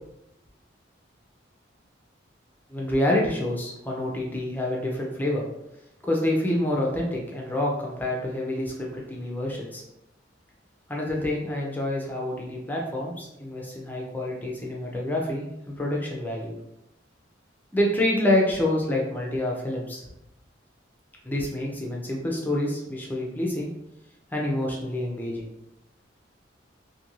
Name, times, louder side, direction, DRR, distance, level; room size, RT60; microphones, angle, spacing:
voice 1, 2.7-5.4 6.0-9.8 10.9-16.5 17.7-20.0 21.2-23.7 24.3-25.5, left 1 dB, 10° left, -2 dB, 0.4 m, -27 dB
2.6 x 2.5 x 2.9 m, 0.84 s
head